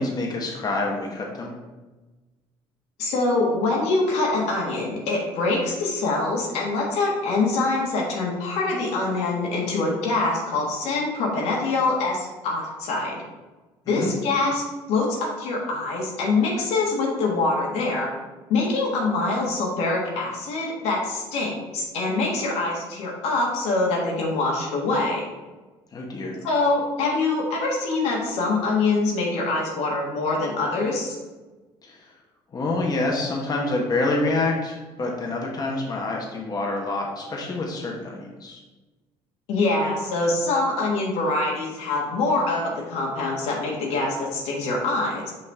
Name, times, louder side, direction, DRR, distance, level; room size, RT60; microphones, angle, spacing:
voice 1, 0.0-1.5 13.9-14.1 25.9-26.4 31.8-32.0 32.5-38.6, left 2 dB, 35° left, -1 dB, 1.2 m, -27 dB
voice 2, 3.0-13.2 13.9-18.1 18.5-25.3 26.4-31.2 39.5-45.3, left 3 dB, 80° left, -2 dB, 1.7 m, -24 dB
5.6 x 5.0 x 3.6 m, 1.2 s
cardioid pair, 90°, 11 cm